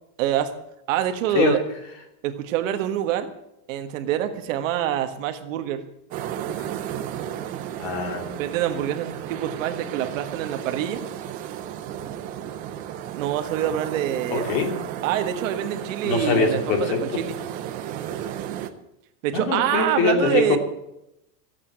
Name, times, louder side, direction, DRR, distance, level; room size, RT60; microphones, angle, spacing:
voice 1, 0.2-0.5 0.9-1.6 2.2-3.3 3.7-5.8 8.4-11.0 13.1-14.6 15.0-17.4 19.2-20.6, right 11 dB, 55° right, 8 dB, 1.5 m, -26 dB
sound 1, 6.1-18.7, right 10 dB, 20° right, 0.5 m, -34 dB
voice 2, 7.8-8.4 14.3-14.8 16.0-17.2 19.3-20.6, left 4 dB, 40° left, 5 dB, 2.8 m, -23 dB
15.0 x 8.5 x 8.7 m, 0.84 s
supercardioid pair, 165°, 47 cm